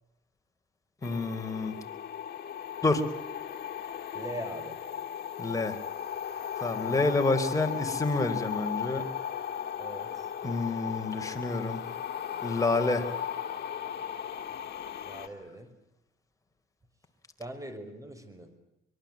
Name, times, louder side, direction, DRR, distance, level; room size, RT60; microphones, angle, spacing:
sound 1, 1.0-15.3, left 9 dB, 55° left, 2.5 m, -36 dB
voice 1, 1.0-1.8 2.8-3.0 5.4-5.8 6.6-9.1 10.4-11.8 12.4-13.1, left 2 dB, 15° left, 4 dB, 4.3 m, -28 dB
voice 2, 4.1-4.8 6.8-7.1 9.8-10.3 15.0-15.8 17.4-18.6, right 1 dB, 15° right, 10 dB, 5.6 m, -42 dB
24.5 x 23.5 x 8.8 m, 0.91 s
cardioid pair, 90°, 20 cm